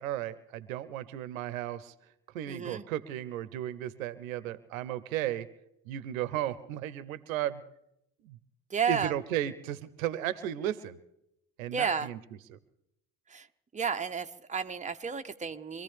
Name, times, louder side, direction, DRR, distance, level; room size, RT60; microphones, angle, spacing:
voice 1, 0.0-1.9 2.3-5.5 5.9-7.6 8.2-8.4 8.9-11.0 11.6-12.2 12.5-12.6, right 12 dB, 80° right, 16 dB, 0.8 m, -34 dB
voice 2, 2.4-2.8 8.7-9.1 11.7-12.1 13.3-13.5 13.7-15.8, right 6 dB, 20° right, 6 dB, 1.0 m, -32 dB
25.0 x 14.5 x 3.5 m, 0.80 s
hypercardioid pair, 50°, 41 cm